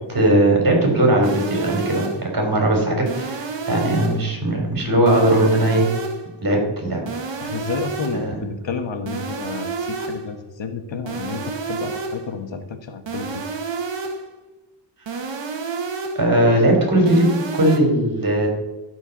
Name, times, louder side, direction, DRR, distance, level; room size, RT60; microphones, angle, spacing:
voice 1, 0.1-5.9 6.4-7.0 8.1-8.4 16.2-18.5, right 1 dB, 45° right, 1 dB, 3.5 m, -19 dB
sound 1, 1.2-2.3 3.1-4.3 5.1-6.3 7.1-8.3 9.1-10.3 11.1-12.3 13.1-14.3 15.1-16.3 17.1-17.8, right 4 dB, 70° right, 1.4 m, -29 dB
voice 2, 7.4-13.4, left 5 dB, 70° left, 7 dB, 1.3 m, -31 dB
13.5 x 4.6 x 7.1 m, 1.1 s
wide cardioid pair, 130°, 46 cm